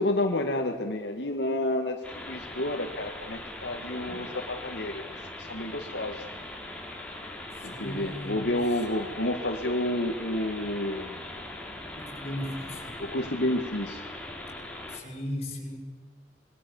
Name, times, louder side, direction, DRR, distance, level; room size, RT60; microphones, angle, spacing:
voice 1, 0.0-2.0 2.3-5.0 5.4-6.2 7.6-11.2 13.0-14.0, left 1 dB, 70° left, 3 dB, 2.0 m, -30 dB
sound 1, 2.0-15.0, left 1 dB, 10° left, 4.2 m, -41 dB
voice 2, 7.6-8.5 12.0-13.0 14.9-15.8, left 1 dB, 35° left, 2 dB, 5.9 m, -37 dB
26.5 x 22.0 x 7.3 m, 1.5 s
head